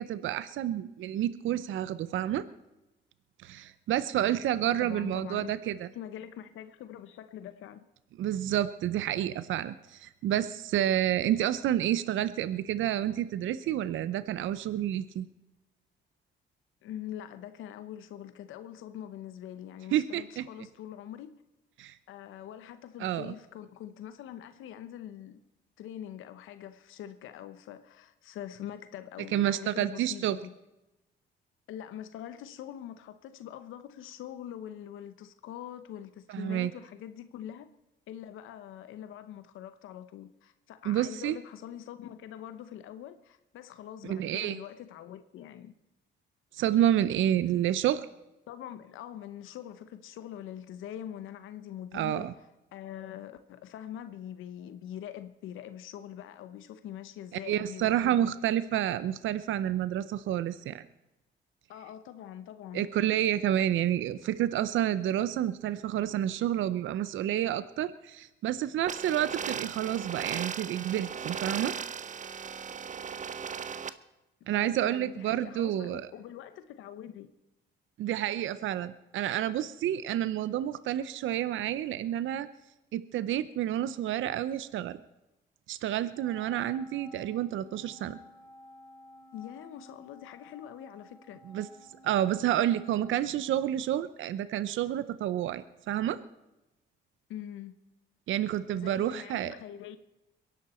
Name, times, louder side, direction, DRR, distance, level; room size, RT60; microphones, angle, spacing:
voice 1, 0.0-2.4 3.4-5.9 8.2-15.3 19.9-20.5 21.8-22.0 23.0-23.3 29.3-30.4 36.3-36.7 40.8-41.4 44.0-44.6 46.5-48.1 51.9-52.3 57.5-60.8 62.7-71.7 74.5-76.1 78.0-82.5 82.9-85.0 85.7-88.2 91.5-91.7 92.0-96.2 98.3-99.5, right 11 dB, 75° right, 0.7 m, -29 dB
voice 2, 4.6-5.5 5.9-7.9 16.8-21.4 22.1-25.4 25.8-30.5 31.7-37.7 38.1-45.7 48.5-52.3 52.7-58.3 61.7-62.9 74.5-77.3 89.3-91.4 97.3-97.7 98.7-100.0, left 10 dB, 85° left, 0.9 m, -44 dB
sound 1, 68.9-73.9, right 6 dB, 40° right, 0.9 m, -37 dB
Wind instrument woodwind instrument, 86.1-93.8, left 2 dB, 15° left, 3.0 m, -54 dB
22.5 x 11.0 x 4.4 m
cardioid pair, 90°, 20 cm